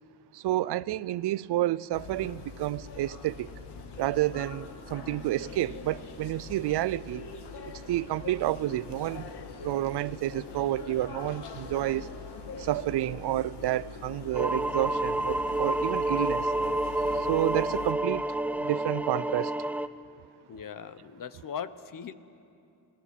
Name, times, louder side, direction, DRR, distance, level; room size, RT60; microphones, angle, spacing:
voice 1, 0.3-3.5 4.0-7.3 7.9-9.3 9.6-12.1 12.6-16.5 17.1-18.2 18.6-19.6, right 15 dB, 75° right, 0.5 m, -30 dB
sound 1, 1.9-17.9, left 4 dB, 75° left, 1.9 m, -43 dB
sound 2, 14.3-19.9, right 1 dB, 5° right, 0.6 m, -29 dB
voice 2, 20.5-22.1, left 7 dB, 50° left, 1.1 m, -39 dB
26.5 x 18.5 x 8.3 m
cardioid pair, 85°, 40 cm